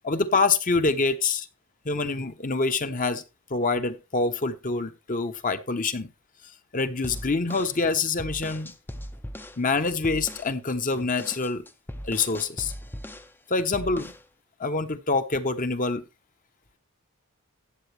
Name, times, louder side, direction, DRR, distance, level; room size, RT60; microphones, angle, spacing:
voice 1, 0.0-1.5 1.8-3.2 3.5-6.1 6.7-8.7 9.6-11.6 12.0-12.7 13.5-14.1 14.6-16.0, left 3 dB, 35° left, 9 dB, 0.9 m, -26 dB
sound 1, 7.0-9.6 10.0-10.5 10.9-13.3 13.7-14.3, equal, 10° left, 0.5 m, -39 dB
14.0 x 8.2 x 3.3 m, 0.28 s
head